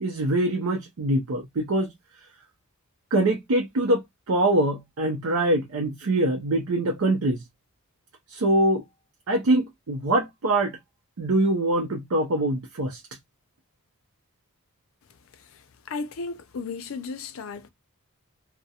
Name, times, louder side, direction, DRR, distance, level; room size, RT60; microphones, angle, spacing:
voice 1, 0.0-1.9 3.1-7.4 8.3-8.8 9.3-10.8 11.2-13.0, right 1 dB, 70° right, 0.5 m, -24 dB
voice 2, 15.9-17.7, left 4 dB, 65° left, 0.4 m, -34 dB
2.3 x 2.0 x 2.7 m
head